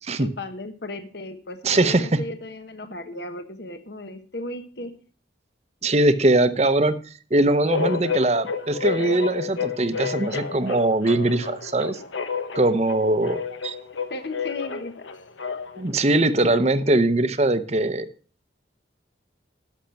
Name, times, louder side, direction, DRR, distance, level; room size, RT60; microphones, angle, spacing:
voice 1, 0.2-4.9 14.1-15.1, left 2 dB, 60° left, 8 dB, 1.1 m, -35 dB
voice 2, 1.6-2.1 5.8-6.9 7.3-12.0 12.5-13.7 15.8-18.1, right 2 dB, 35° right, 12 dB, 0.8 m, -21 dB
sound 1, 7.7-15.9, left 6 dB, 80° left, 1.1 m, -30 dB
11.5 x 6.4 x 5.8 m, 0.42 s
head